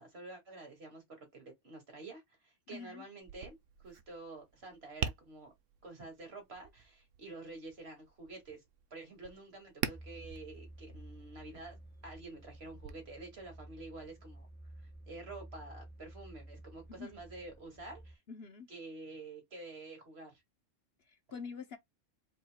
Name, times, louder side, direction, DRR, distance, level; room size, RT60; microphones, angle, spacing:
voice 1, 0.0-5.5 5.8-8.6 8.9-11.8 12.0-14.5 14.8-18.2 18.7-20.4, right 2 dB, 55° right, 2.5 m, -49 dB
voice 2, 2.7-3.1 16.9-17.2 18.3-18.7 21.0-21.8, left 5 dB, 55° left, 1.0 m, -46 dB
Tap, 3.2-12.9, right 8 dB, 80° right, 1.1 m, -45 dB
sound 1, 9.9-18.2, right 1 dB, 10° left, 1.2 m, -53 dB
4.8 x 4.2 x 2.3 m
omnidirectional pair, 1.3 m